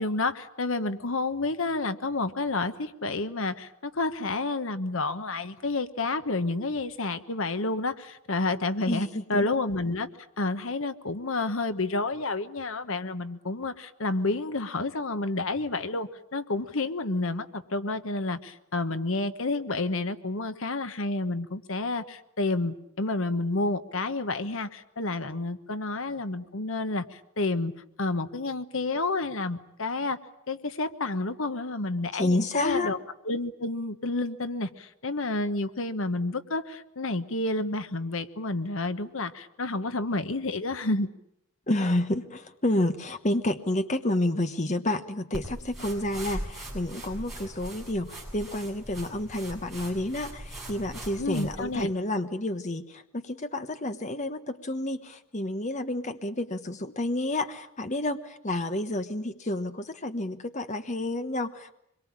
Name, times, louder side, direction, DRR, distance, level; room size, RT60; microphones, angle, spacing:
voice 1, 0.0-10.1 10.4-27.7 28.0-30.2 30.5-33.0 33.2-41.1 51.2-51.9, left 2 dB, 65° left, 11 dB, 1.2 m, -30 dB
voice 2, 8.9-9.5 32.1-32.9 41.7-61.7, left 1 dB, 35° left, 8 dB, 1.2 m, -30 dB
sound 1, 45.3-51.8, right 1 dB, ahead, 7.4 m, -40 dB
25.5 x 22.5 x 8.8 m, 0.77 s
head